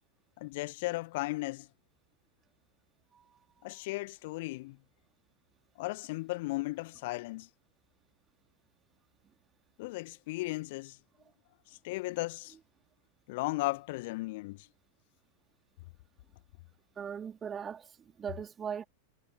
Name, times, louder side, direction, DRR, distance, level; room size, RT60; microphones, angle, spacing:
voice 1, 0.4-1.7 3.6-4.8 5.8-7.5 9.8-11.0 11.7-12.6 13.3-14.7, left 21 dB, 50° left, 1.6 m, -36 dB
voice 2, 3.1-3.8 17.0-18.8, right 7 dB, 20° right, 3.7 m, -40 dB
figure-of-eight pair, 90°, 0 cm